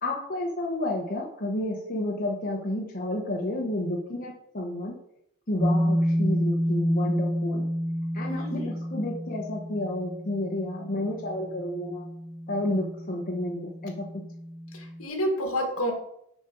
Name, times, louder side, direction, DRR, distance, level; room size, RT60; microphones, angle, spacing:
voice 1, 0.0-5.0 5.5-7.6 8.1-12.1 12.5-14.2, left 1 dB, 40° left, -2 dB, 1.0 m, -31 dB
sound 1, 5.6-15.0, equal, ahead, 1.1 m, -30 dB
voice 2, 8.3-8.7 14.7-15.9, equal, 70° left, 3 dB, 1.7 m, -29 dB
7.3 x 5.2 x 4.4 m, 0.74 s
head